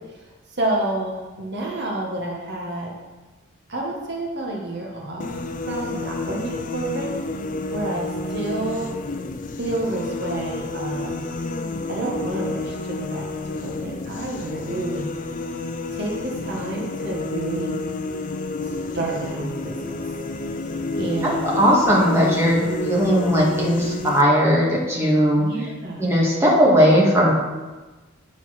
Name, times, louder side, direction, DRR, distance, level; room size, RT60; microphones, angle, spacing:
voice 1, 0.5-2.9 3.7-5.3 5.7-7.1 7.7-8.9 9.6-11.1 11.9-15.1 15.9-17.8 18.9-20.0 21.0-21.6 25.4-26.1, right 2 dB, 55° right, -2 dB, 1.4 m, -29 dB
sound 1, 5.2-24.2, left 2 dB, 40° left, 0.5 m, -30 dB
voice 2, 21.5-25.4 26.0-27.3, equal, 15° right, -5 dB, 1.7 m, -18 dB
9.5 x 4.1 x 6.4 m, 1.2 s
head